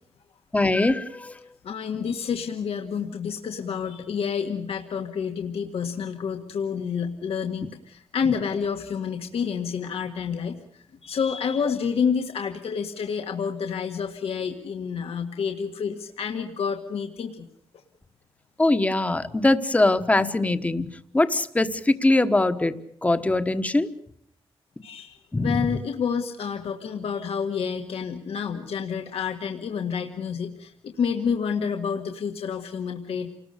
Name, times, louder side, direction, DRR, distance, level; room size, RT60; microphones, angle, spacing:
voice 1, 0.5-1.3 18.6-20.9 21.1-22.7 23.0-23.9 25.3-25.7, left 2 dB, 15° left, 10 dB, 1.2 m, -22 dB
voice 2, 1.6-17.5 24.8-33.3, left 6 dB, 80° left, 3 dB, 1.9 m, -29 dB
29.0 x 20.0 x 6.7 m, 0.68 s
wide cardioid pair, 155°, 10 cm